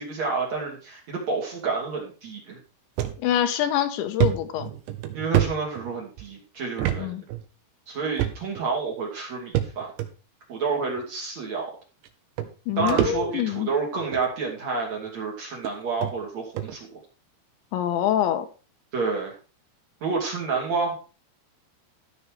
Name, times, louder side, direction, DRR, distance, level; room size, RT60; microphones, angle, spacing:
voice 1, 0.0-2.6 5.1-7.1 7.9-9.9 10.5-11.7 12.8-17.0 18.9-19.3 20.0-21.0, right 4 dB, 40° right, -1 dB, 3.5 m, -29 dB
sound 1, 3.0-3.2 3.6-3.7 4.2-6.2 6.8-7.0 7.3-7.4 8.2-8.7 9.6-10.1 11.0-11.1 12.0-12.1 12.4-13.6 14.0-14.3 15.1-15.2 15.6-15.7 16.0-16.1 16.6-16.8, right 12 dB, 80° right, 3.4 m, -26 dB
voice 2, 3.2-4.7 7.0-7.2 12.7-13.7 17.7-18.5, left 11 dB, 80° left, 8 dB, 3.4 m, -25 dB
14.0 x 6.5 x 4.8 m, 0.34 s
omnidirectional pair, 5.2 m